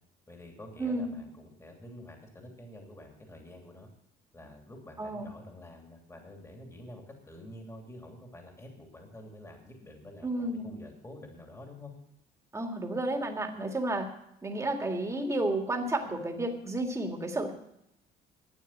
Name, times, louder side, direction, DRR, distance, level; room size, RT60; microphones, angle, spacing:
voice 1, 0.3-3.9 4.3-11.9, left 1 dB, 15° left, 2 dB, 2.8 m, -48 dB
voice 2, 0.8-1.2 5.0-5.3 10.2-10.7 12.5-14.1 14.4-17.5, right 2 dB, 15° right, 3 dB, 2.0 m, -31 dB
12.5 x 8.9 x 7.3 m, 0.79 s
cardioid pair, 110°, 17 cm